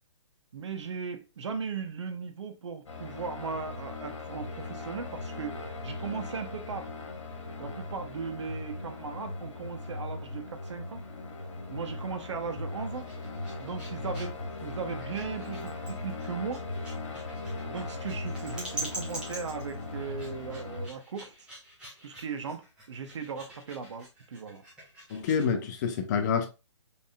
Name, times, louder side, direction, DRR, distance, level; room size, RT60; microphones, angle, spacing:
voice 1, 0.5-6.9 7.6-11.0 11.7-13.1 13.6-14.3 14.6-16.6 17.7-21.5 22.0-24.6, right 5 dB, 70° right, 0.9 m, -37 dB
sound 1, 2.9-20.9, left 2 dB, 80° left, 1.3 m, -39 dB
sound 2, 12.9-25.5, right 1 dB, 5° right, 1.2 m, -45 dB
voice 2, 25.1-26.5, left 6 dB, 35° left, 0.8 m, -27 dB
4.1 x 3.6 x 2.3 m
hypercardioid pair, 145°, 16 cm